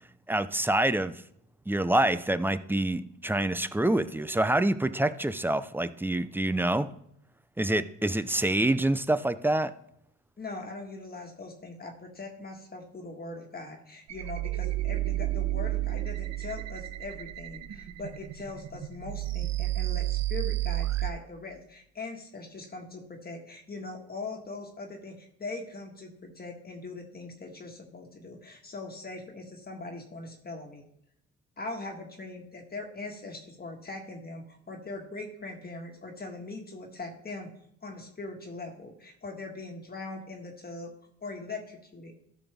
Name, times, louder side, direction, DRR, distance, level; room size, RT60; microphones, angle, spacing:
voice 1, 0.3-1.2 1.7-6.9 7.6-9.7, right 1 dB, 5° right, 13 dB, 0.4 m, -26 dB
voice 2, 10.4-30.8 31.6-37.5 37.8-40.9 41.2-42.1, left 3 dB, 30° left, 1 dB, 1.6 m, -41 dB
sound 1, 14.1-21.1, right 16 dB, 60° right, 0.7 m, -31 dB
12.5 x 6.1 x 3.4 m, 0.74 s
cardioid pair, 90°, 30 cm